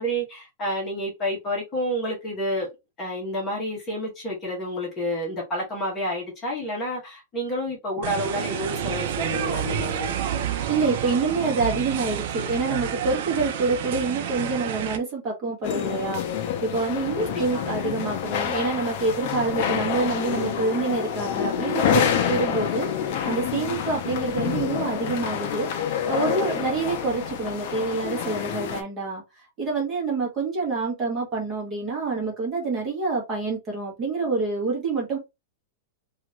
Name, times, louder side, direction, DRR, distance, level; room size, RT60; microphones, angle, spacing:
voice 1, 0.0-2.7 3.0-10.1 17.2-17.7, equal, 15° left, 1.1 m, -29 dB
sound 1, 8.0-15.0, right 9 dB, 45° right, 0.5 m, -29 dB
voice 2, 10.7-16.2 16.6-29.2 29.6-35.2, right 3 dB, 20° right, 1.1 m, -27 dB
sound 2, 15.6-28.8, left 8 dB, 40° left, 0.5 m, -27 dB
2.9 x 2.4 x 3.0 m
supercardioid pair, 175°, 0 cm